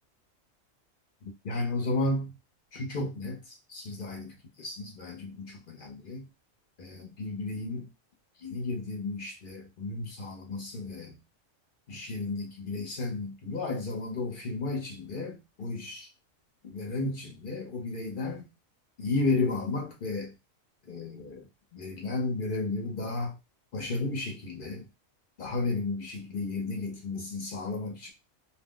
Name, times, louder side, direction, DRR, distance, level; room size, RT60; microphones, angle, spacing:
voice 1, 1.2-2.4 2.7-6.3 6.8-7.9 8.4-11.2 11.9-16.1 16.6-18.5 19.0-20.3 20.9-23.4 23.7-24.9 25.4-28.1, left 3 dB, 50° left, 0.7 m, -33 dB
2.4 x 2.0 x 3.6 m
omnidirectional pair, 1.4 m